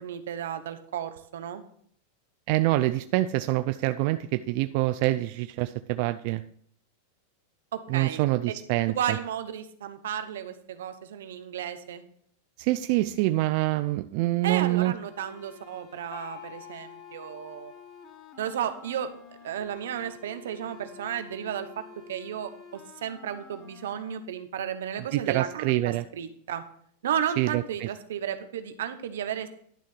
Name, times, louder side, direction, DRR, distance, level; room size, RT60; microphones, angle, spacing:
voice 1, 0.0-1.6 7.7-8.2 8.5-8.6 9.0-12.0 14.4-17.7 18.4-19.1 19.4-21.8 22.1-26.6 27.0-29.5, right 9 dB, 85° right, 9 dB, 1.1 m, -33 dB
voice 2, 2.5-6.4 7.9-9.2 12.6-14.9 25.0-26.0 27.4-27.9, right 17 dB, 55° right, 11 dB, 0.4 m, -26 dB
sound 1, 14.9-24.2, left 5 dB, 25° left, 1.3 m, -50 dB
Gong, 16.1-19.6, left 10 dB, 70° left, 3.7 m, -49 dB
11.5 x 3.8 x 7.4 m, 0.63 s
supercardioid pair, 135°, 0 cm